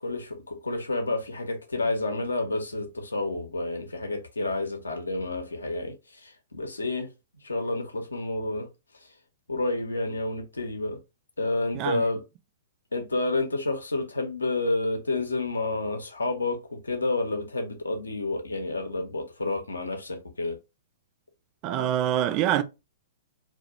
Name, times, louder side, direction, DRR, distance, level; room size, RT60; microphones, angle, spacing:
voice 1, 0.0-7.1 7.4-8.7 9.5-11.0 11.4-12.2 12.9-20.6, left 2 dB, 85° left, 0.6 m, -29 dB
voice 2, 21.6-22.6, right 11 dB, 35° right, 0.4 m, -25 dB
2.2 x 2.1 x 2.9 m
figure-of-eight pair, 115°, 0 cm